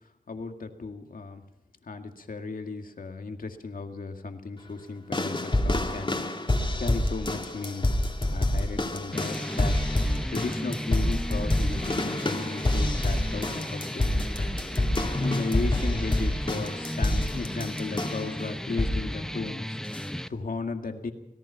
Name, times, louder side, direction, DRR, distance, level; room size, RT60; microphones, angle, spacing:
voice 1, 0.3-1.4 1.9-6.2 6.8-8.0 8.3-9.8 10.3-14.2 15.2-19.8 20.3-21.1, left 4 dB, 75° left, 5 dB, 2.1 m, -35 dB
sound 1, 5.1-18.3 18.8-19.1 19.9-20.0, left 1 dB, 35° left, 2.3 m, -27 dB
sound 2, 9.1-20.3, equal, 5° left, 0.7 m, -35 dB
26.5 x 18.0 x 5.7 m, 0.83 s
wide cardioid pair, 80°, 15 cm